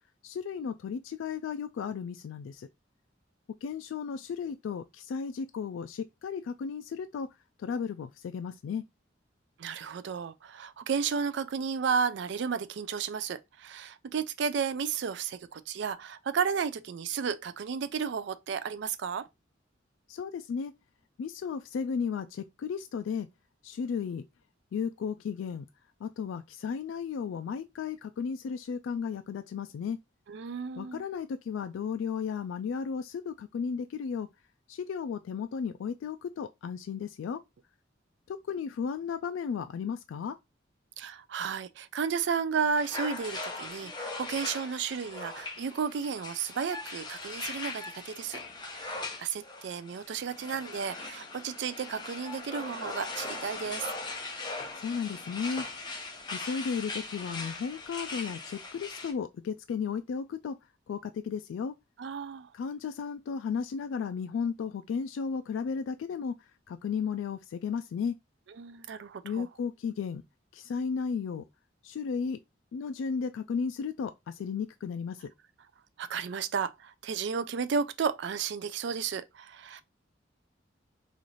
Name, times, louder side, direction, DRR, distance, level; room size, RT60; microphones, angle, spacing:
voice 1, 0.2-2.7 3.6-7.3 7.6-8.8 20.1-20.7 21.2-23.3 23.6-24.2 24.7-25.7 26.0-30.0 30.8-34.3 34.7-37.4 38.3-40.4 54.8-55.7 56.3-60.6 60.9-61.7 62.5-66.4 66.7-68.2 69.2-70.2 70.5-71.4 71.8-72.4 72.7-75.3, left 6 dB, 80° left, 0.3 m, -34 dB
voice 2, 9.6-19.3 30.3-31.0 41.0-53.9 62.0-62.5 68.6-69.5 76.0-79.8, right 6 dB, 65° right, 0.4 m, -33 dB
sound 1, 42.8-59.1, left 3 dB, 25° left, 0.8 m, -40 dB
3.1 x 2.5 x 4.0 m
head